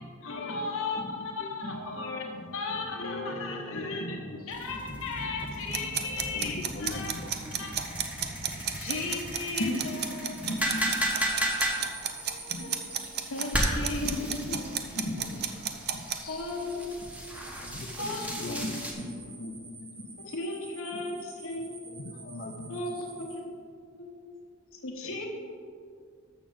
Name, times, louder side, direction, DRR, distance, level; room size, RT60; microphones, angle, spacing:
voice 1, 0.0-2.3 2.5-4.2 4.5-7.1 7.5-7.9 8.8-9.7 10.0-10.4 12.3-12.7 13.2-14.4 16.3-16.9 18.0-18.8 20.2-21.8 22.7-23.5 24.0-24.4 24.7-25.3, left 3 dB, 70° left, 1 dB, 1.0 m, -36 dB
voice 2, 1.6-2.0 2.3-2.5 3.7-4.4 4.7-5.2 6.3-7.7 9.6-9.7 10.3-11.3 12.5-12.7 14.0-15.4 15.9-16.1 17.4-17.6 18.2-18.3 18.6-19.6 19.9-20.0 21.6-22.0, left 1 dB, 85° left, 1 dB, 1.7 m, -39 dB
voice 3, 3.7-4.0 4.3-4.4 6.3-7.3 10.1-10.3 11.8-12.0 14.2-14.6 16.0-16.5 17.6-18.8 19.4-19.9 21.8-22.8 25.0-25.3, left 2 dB, 45° left, 2 dB, 0.6 m, -41 dB
sound 1, 4.5-18.9, equal, 5° right, 1.3 m, -35 dB
sound 2, 5.7-16.2, right 10 dB, 50° right, 0.7 m, -32 dB
sound 3, 9.8-13.7 15.2-23.4, right 3 dB, 30° right, 1.7 m, -48 dB
13.5 x 6.3 x 3.9 m, 2.2 s
head